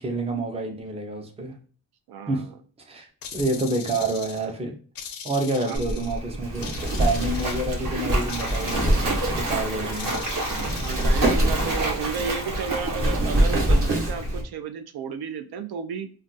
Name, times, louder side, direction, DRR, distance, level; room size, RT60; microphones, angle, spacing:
voice 1, 0.0-1.6 2.3-2.4 2.9-4.7 5.2-6.7 7.0-10.2, right 2 dB, 15° right, 2 dB, 0.5 m, -28 dB
voice 2, 2.1-2.5 5.6-6.0 10.7-16.1, right 6 dB, 80° right, 9 dB, 0.5 m, -33 dB
sound 1, 3.2-4.5 5.0-6.2 6.6-7.9 8.3-9.3 9.9-11.2, left 7 dB, 65° left, 0.5 m, -40 dB
Wind, 5.7-14.4, right 1 dB, 35° right, 0.9 m, -25 dB
Splash splatter, 6.4-14.3, right 2 dB, 60° right, 0.9 m, -31 dB
2.4 x 2.2 x 3.8 m, 0.41 s
wide cardioid pair, 175°, 37 cm